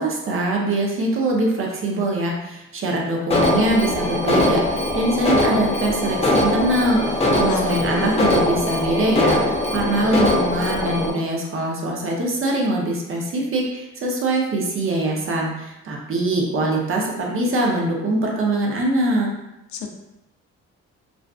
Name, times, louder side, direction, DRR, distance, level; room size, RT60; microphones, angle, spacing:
voice 1, 0.0-19.3, right 2 dB, 45° right, -1 dB, 0.6 m, -23 dB
Alarm, 3.3-11.1, left 1 dB, 20° left, 0.5 m, -21 dB
voice 2, 7.4-8.1 19.7-19.9, left 5 dB, 70° left, 3 dB, 0.5 m, -28 dB
2.4 x 2.3 x 2.3 m, 0.92 s
cardioid pair, 90°, 30 cm